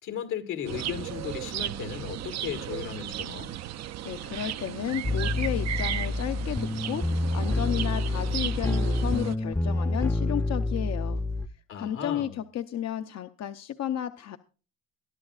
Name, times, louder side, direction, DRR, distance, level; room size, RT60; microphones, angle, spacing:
voice 1, 0.0-3.5 11.7-12.4, left 8 dB, 85° left, 2.0 m, -36 dB
sound 1, 0.7-9.4, right 12 dB, 60° right, 0.5 m, -35 dB
voice 2, 4.0-11.2 11.7-14.4, left 10 dB, 60° left, 0.7 m, -33 dB
sound 2, 5.0-11.5, left 2 dB, 10° left, 0.6 m, -28 dB
22.0 x 11.0 x 2.4 m
cardioid pair, 90°, 30 cm